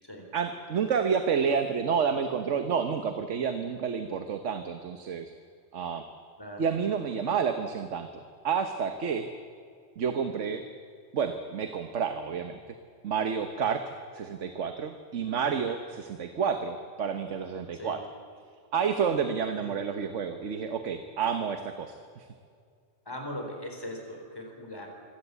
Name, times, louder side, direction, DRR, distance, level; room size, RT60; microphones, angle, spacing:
voice 1, 0.3-5.3 5.7-6.1 6.6-8.1 8.4-9.3 10.0-10.6 11.1-12.6 13.0-18.0 18.7-22.2, right 6 dB, 80° right, 8 dB, 1.4 m, -29 dB
voice 2, 6.4-6.7 15.4-15.5 17.7-18.0 19.2-19.8 23.0-24.9, left 1 dB, 20° left, 2 dB, 4.1 m, -40 dB
24.5 x 17.0 x 8.3 m, 2.2 s
omnidirectional pair, 1.2 m